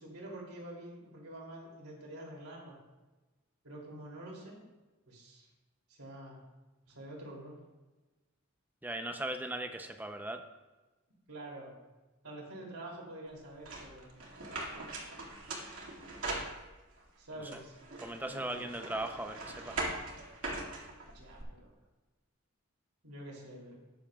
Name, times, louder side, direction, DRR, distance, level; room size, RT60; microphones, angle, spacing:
voice 1, 0.0-2.8 3.6-4.6 5.1-5.5 5.9-6.4 6.9-7.6 11.3-11.7 12.2-14.2 17.2-17.8 18.3-18.9 21.1-21.7 23.0-23.8, right 1 dB, 90° right, -2 dB, 2.9 m, -47 dB
voice 2, 8.8-10.4 17.4-17.5 18.0-19.8, right 1 dB, 10° right, 6 dB, 0.6 m, -38 dB
sound 1, 13.6-17.0 17.5-21.4, right 2 dB, 70° right, 2.2 m, -41 dB
20.5 x 7.0 x 2.4 m, 1.2 s
head